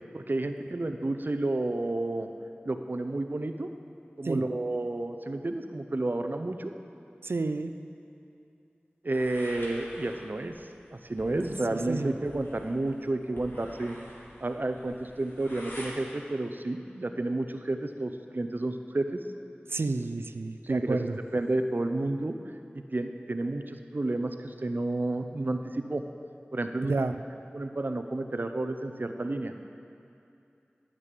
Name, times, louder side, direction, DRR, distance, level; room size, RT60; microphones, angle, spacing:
voice 1, 0.1-2.3 2.6-3.7 4.2-6.7 9.0-14.0 14.4-19.2 20.6-21.0 21.3-22.4 22.9-26.0 26.5-26.9 27.5-29.5, right 2 dB, 55° right, 7 dB, 0.7 m, -31 dB
voice 2, 7.2-7.7 11.7-12.1 19.7-21.2 26.9-27.2, right 3 dB, 85° right, 9 dB, 0.5 m, -30 dB
sound 1, 9.1-15.9, equal, 65° left, 2.7 m, -47 dB
10.0 x 7.6 x 9.3 m, 2.6 s
wide cardioid pair, 50°, 4 cm